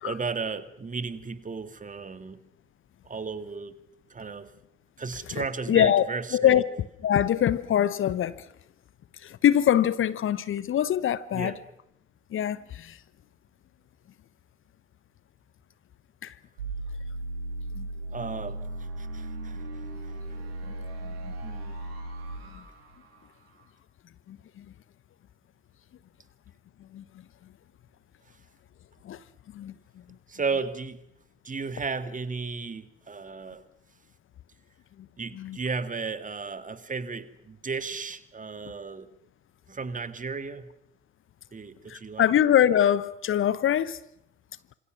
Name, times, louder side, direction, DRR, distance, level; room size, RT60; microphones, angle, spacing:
voice 1, 0.0-2.4 3.0-3.8 4.1-4.5 5.0-6.6 11.3-11.6 18.1-18.6 19.0-19.6 20.1-20.2 21.4-21.8 30.3-31.0 31.4-33.6 35.2-39.1 39.7-40.7 41.5-42.3, right 4 dB, 25° right, 2.1 m, -34 dB
voice 2, 5.3-6.1 6.3-6.6 7.0-8.5 9.1-11.5 12.3-13.0 16.2-16.3 17.7-17.9 21.0-21.3 22.5-22.6 24.3-24.7 26.9-27.0 29.0-29.2 29.5-29.7 35.3-35.6 41.9-44.0, left 10 dB, 40° left, 1.0 m, -24 dB
sound 1, 16.6-23.5, right 2 dB, 75° right, 6.2 m, -37 dB
28.0 x 26.5 x 6.2 m
figure-of-eight pair, 50°, 30 cm